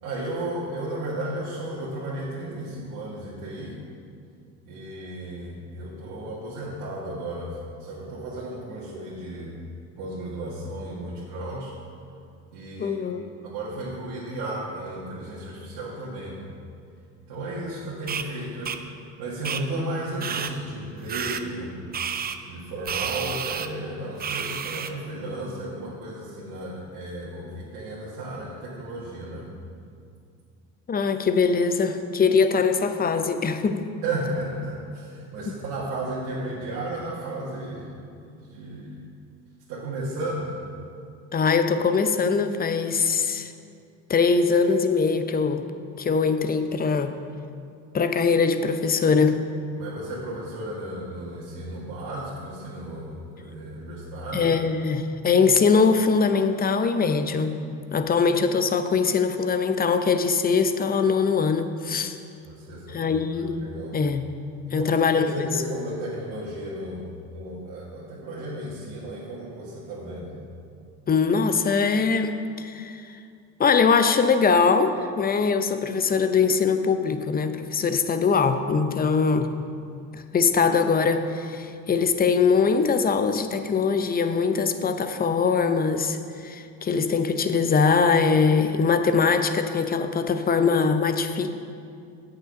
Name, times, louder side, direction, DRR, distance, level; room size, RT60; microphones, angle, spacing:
voice 1, 0.0-3.8 4.6-9.6 10.0-11.7 12.5-13.0 13.4-16.4 17.2-18.8 19.2-21.7 22.5-29.5 34.0-37.9 38.2-39.0 39.7-40.5 49.8-54.5 62.4-64.0 64.7-70.3, right 1 dB, 65° right, -7 dB, 1.8 m, -34 dB
voice 2, 12.8-13.3 30.9-33.9 35.5-35.6 41.3-43.5 44.1-45.7 46.0-47.2 47.9-49.4 54.3-57.6 57.9-62.2 62.9-63.6 63.9-64.3 64.7-65.5 71.1-73.1 73.6-79.5 80.1-86.2 86.4-91.5, left 5 dB, 25° left, 9 dB, 0.6 m, -22 dB
sound 1, 18.1-18.2 18.7-18.8 19.4-19.6 20.2-20.5 21.1-21.4 21.9-22.4 22.9-23.7 24.2-24.9, right 7 dB, 25° right, 0.5 m, -30 dB
8.1 x 6.8 x 5.2 m, 2.4 s
supercardioid pair, 85°, 35 cm